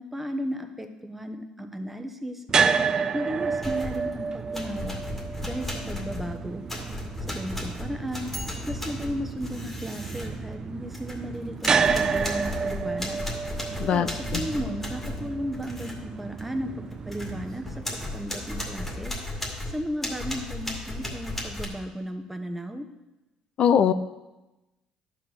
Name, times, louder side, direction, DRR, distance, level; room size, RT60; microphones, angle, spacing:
voice 1, 0.0-5.0 5.4-6.6 7.2-8.3 8.7-13.3 13.8-17.8 18.1-22.9, equal, 10° right, 6 dB, 1.0 m, -35 dB
sound 1, 2.5-18.6, right 5 dB, 35° right, 0.4 m, -30 dB
sound 2, 3.6-4.1 4.5-11.3 11.6-16.0 16.4-16.5 16.9-21.7, left 1 dB, 15° left, 2.2 m, -35 dB
voice 2, 23.6-23.9, left 8 dB, 55° left, 12 dB, 0.6 m, -20 dB
11.5 x 4.9 x 5.7 m, 1.0 s
cardioid pair, 100°, 2 cm